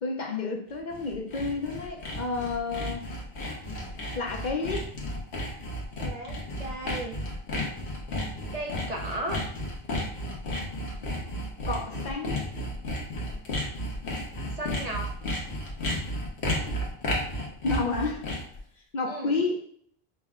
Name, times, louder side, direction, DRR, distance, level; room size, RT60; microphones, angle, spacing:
voice 1, 0.0-3.0 4.1-4.9 11.7-12.4 17.6-18.3 18.9-19.6, left 3 dB, 50° left, 1 dB, 0.7 m, -30 dB
Sawing, 0.7-18.6, left 1 dB, 80° left, 1.3 m, -33 dB
voice 2, 6.0-7.2 8.5-9.4 14.6-15.0 19.1-19.3, right 1 dB, 45° right, 1 dB, 0.6 m, -35 dB
5.7 x 2.1 x 3.5 m, 0.64 s
omnidirectional pair, 1.1 m